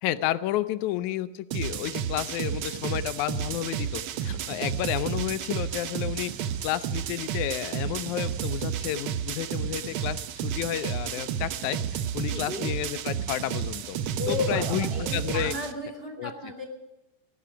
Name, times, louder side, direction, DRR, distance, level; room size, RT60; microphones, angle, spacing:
voice 1, 0.0-6.3 6.6-14.0 14.3-15.5 16.2-16.3, left 13 dB, 90° left, 13 dB, 2.1 m, -31 dB
sound 1, 1.5-15.7, right 9 dB, 75° right, 1.2 m, -31 dB
voice 2, 12.3-12.7 14.2-16.7, left 3 dB, 20° right, 4 dB, 2.3 m, -33 dB
18.0 x 15.0 x 5.1 m, 1.0 s
omnidirectional pair, 3.3 m